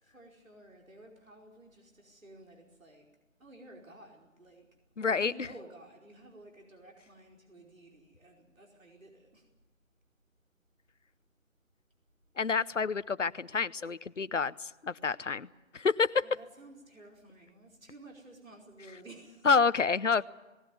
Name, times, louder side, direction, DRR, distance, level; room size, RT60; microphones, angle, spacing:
voice 1, 0.0-3.1 3.4-4.7 5.0-9.5 16.2-19.5, right 1 dB, 80° right, 0 dB, 5.0 m, -53 dB
voice 2, 5.0-5.3 12.4-15.5 15.7-16.2 19.4-20.2, left 5 dB, 65° left, 16 dB, 0.9 m, -28 dB
19.5 x 18.0 x 9.4 m, 1.1 s
figure-of-eight pair, 170°, 39 cm